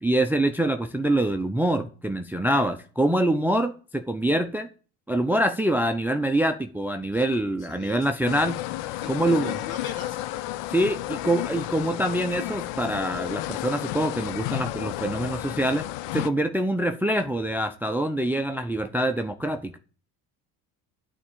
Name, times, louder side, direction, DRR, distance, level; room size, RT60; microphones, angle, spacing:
voice 1, 0.0-4.7 5.1-8.6 9.1-9.6 10.7-15.9 16.1-19.8, right 1 dB, 5° right, 0.5 m, -25 dB
voice 2, 7.6-8.1 9.0-10.3, left 6 dB, 55° left, 2.0 m, -40 dB
sound 1, 8.3-16.3, left 15 dB, 70° left, 0.6 m, -32 dB
8.6 x 3.7 x 6.8 m
supercardioid pair, 75°, 44 cm